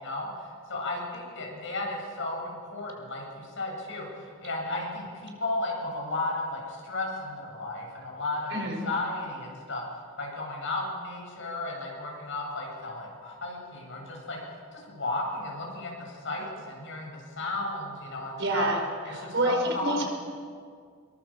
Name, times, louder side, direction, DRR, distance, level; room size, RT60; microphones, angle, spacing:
voice 1, 0.0-9.8 10.2-18.7 19.0-20.0, left 2 dB, 65° left, -1 dB, 7.6 m, -34 dB
voice 2, 8.5-8.8 18.4-18.8 19.1-20.0, right 1 dB, 60° right, 1 dB, 5.3 m, -27 dB
25.0 x 22.5 x 7.3 m, 2.1 s
head